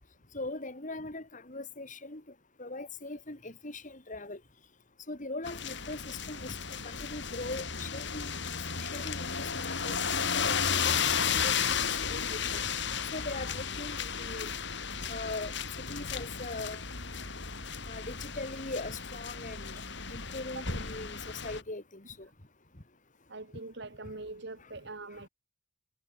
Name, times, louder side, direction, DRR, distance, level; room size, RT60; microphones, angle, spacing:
voice 1, 0.3-2.2 2.6-4.4 5.1-6.6 6.8-8.3 8.8-12.6 13.1-14.5 15.1-16.8 17.9-19.8 20.1-22.3, left 2 dB, 40° left, 2.8 m, -41 dB
sound 1, 5.4-21.6, left 6 dB, 60° left, 5.7 m, -34 dB
voice 2, 23.3-25.3, right 2 dB, 60° right, 2.0 m, -43 dB
head